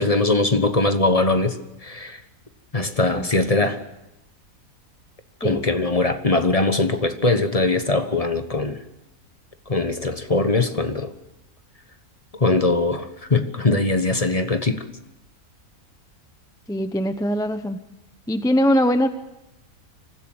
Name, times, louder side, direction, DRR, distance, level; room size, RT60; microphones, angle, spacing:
voice 1, 0.0-2.2 2.7-3.8 5.4-8.8 9.7-11.1 12.4-14.8, left 2 dB, 25° left, 1.2 m, -21 dB
voice 2, 16.7-17.8 18.3-19.1, equal, 5° left, 0.5 m, -21 dB
25.0 x 15.0 x 7.9 m
omnidirectional pair, 1.6 m